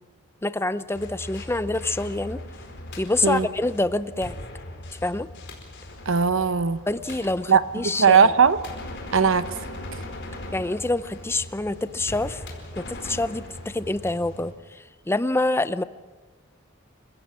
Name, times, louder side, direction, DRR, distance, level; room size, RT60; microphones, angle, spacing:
voice 1, 0.4-2.4 3.0-4.3 5.0-5.3 6.9-8.3 10.5-12.4 12.8-15.8, left 2 dB, 10° left, 14 dB, 0.6 m, -26 dB
sound 1, 0.9-14.5, left 1 dB, 60° left, 4.7 m, -39 dB
voice 2, 6.1-6.8 7.5-8.6 9.1-9.5, right 6 dB, 65° right, 13 dB, 0.9 m, -19 dB
29.5 x 16.0 x 7.5 m, 1.4 s
head